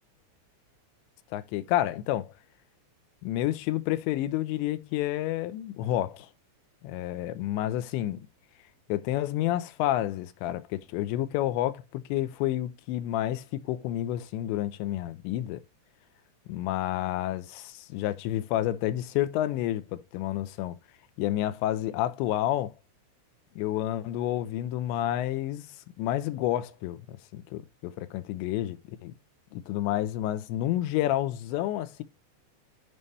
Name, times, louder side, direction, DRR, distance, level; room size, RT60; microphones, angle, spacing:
voice 1, 1.3-2.3 3.2-6.3 6.8-8.3 8.9-15.6 16.5-20.8 21.2-22.7 23.6-25.7 26.0-29.1 29.5-32.0, left 13 dB, 90° left, 2.9 m, -30 dB
11.5 x 5.4 x 3.2 m
omnidirectional pair, 5.1 m